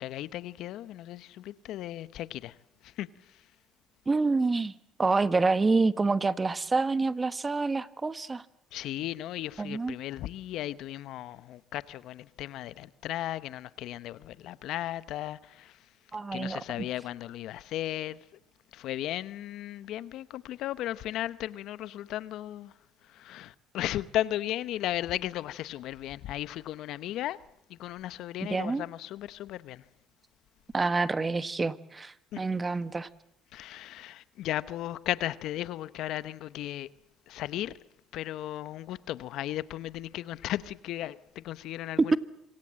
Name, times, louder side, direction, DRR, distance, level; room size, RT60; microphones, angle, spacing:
voice 1, 0.0-2.6 2.8-3.1 8.7-15.8 16.3-18.2 18.7-22.7 23.1-27.4 27.7-29.8 32.3-32.4 33.5-36.9 37.3-37.7 38.1-42.2, left 13 dB, 70° left, 0.9 m, -35 dB
voice 2, 4.1-4.7 5.0-8.4 9.6-9.9 16.1-16.6 28.4-28.8 30.7-33.1 42.1-42.2, right 3 dB, 25° right, 1.4 m, -27 dB
26.5 x 24.5 x 7.6 m
hypercardioid pair, 65°, 0 cm